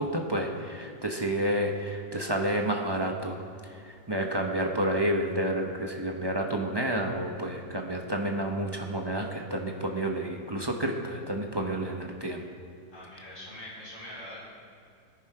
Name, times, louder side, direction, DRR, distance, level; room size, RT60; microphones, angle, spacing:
voice 1, 0.0-3.4 3.6-12.5, right 1 dB, 20° right, 1 dB, 0.6 m, -30 dB
voice 2, 12.9-14.4, left 1 dB, 45° left, -8 dB, 5.0 m, -43 dB
18.5 x 10.5 x 4.8 m, 2.5 s
omnidirectional pair, 1.9 m